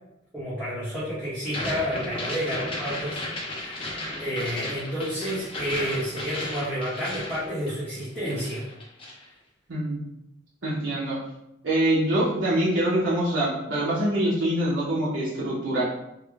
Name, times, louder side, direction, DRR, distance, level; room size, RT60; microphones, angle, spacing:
voice 1, 0.3-3.9 4.2-8.7, equal, 5° right, -12 dB, 0.9 m, -30 dB
sound 1, 1.4-8.0 8.3-9.2, left 1 dB, 30° left, 0.6 m, -34 dB
voice 2, 9.7-10.0 10.6-11.2 11.6-15.8, right 1 dB, 70° right, -7 dB, 0.8 m, -24 dB
3.4 x 2.1 x 3.4 m, 0.85 s
head